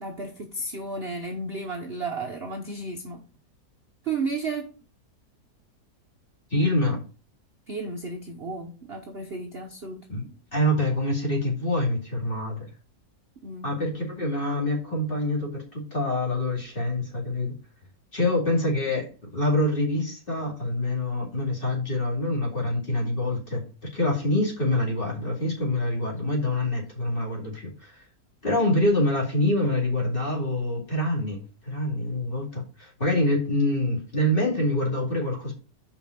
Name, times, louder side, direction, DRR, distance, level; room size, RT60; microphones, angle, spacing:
voice 1, 0.0-3.3 4.0-4.7 7.7-10.1 13.4-13.7, right 3 dB, 45° right, 0.9 m, -33 dB
voice 2, 6.5-7.0 10.1-12.7 13.6-17.6 18.1-23.6 23.9-28.0 28.4-35.5, left 1 dB, 30° left, 2.6 m, -26 dB
5.4 x 4.8 x 5.8 m
omnidirectional pair, 1.8 m